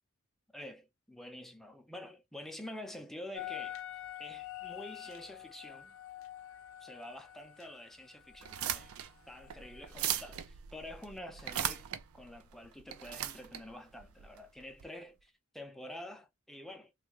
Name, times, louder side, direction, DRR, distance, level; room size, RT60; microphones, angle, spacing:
voice 1, 0.5-3.8 4.2-5.9 6.8-8.9 9.3-16.9, left 1 dB, ahead, 0.5 m, -48 dB
sound 1, 3.4-8.9 9.3-10.1, left 13 dB, 65° left, 0.5 m, -46 dB
sound 2, 8.3-14.8, right 10 dB, 90° right, 0.5 m, -39 dB
3.2 x 2.4 x 3.0 m
head